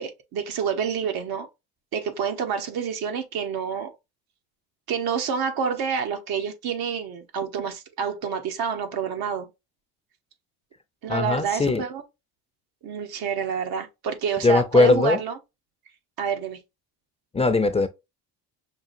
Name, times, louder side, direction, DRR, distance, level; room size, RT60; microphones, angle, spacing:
voice 1, 0.0-1.5 1.9-3.9 4.9-9.5 11.0-12.0 12.8-15.4 16.2-16.6, right 7 dB, 70° right, 1.1 m, -28 dB
voice 2, 11.1-11.8 14.4-15.2 17.3-17.9, left 3 dB, 15° left, 0.5 m, -20 dB
5.9 x 2.4 x 2.5 m
cardioid pair, 100°, 37 cm